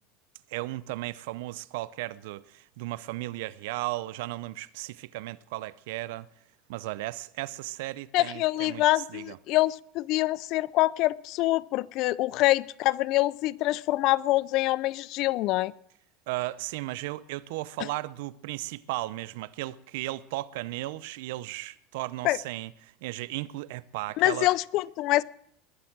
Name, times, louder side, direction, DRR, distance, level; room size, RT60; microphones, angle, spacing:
voice 1, 0.5-6.3 6.7-9.4 16.3-24.5, right 18 dB, 75° right, 0.6 m, -35 dB
voice 2, 8.1-15.7 22.2-22.4 24.2-25.2, left 18 dB, 60° left, 0.5 m, -25 dB
21.0 x 7.7 x 7.4 m
hypercardioid pair, 90°, 0 cm